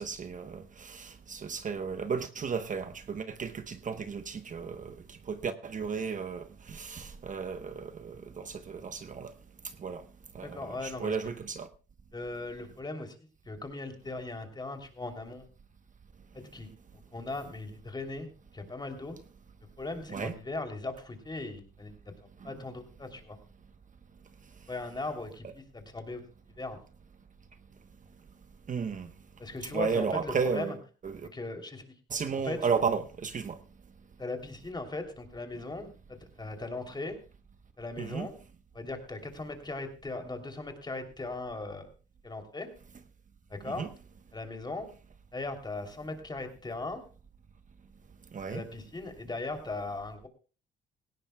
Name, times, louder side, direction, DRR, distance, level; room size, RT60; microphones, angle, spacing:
voice 1, 0.0-9.3 9.8-10.0 10.3-11.7 20.1-20.3 22.4-22.5 28.7-29.1 29.7-30.8 31.0-31.3 32.1-33.6 38.0-38.3 43.6-43.9 48.3-48.6, right 6 dB, 40° right, 1.0 m, -34 dB
voice 2, 10.4-11.3 12.1-13.2 13.5-15.4 16.3-19.2 19.8-22.1 22.4-23.4 24.7-26.2 26.6-26.8 29.4-30.8 31.3-31.8 32.4-32.7 34.2-37.2 37.8-38.3 38.7-41.9 42.2-42.7 43.5-43.9 44.3-44.9 45.3-47.0 48.5-50.3, left 2 dB, 20° left, 3.1 m, -38 dB
18.0 x 16.5 x 2.3 m
cardioid pair, 90°, 20 cm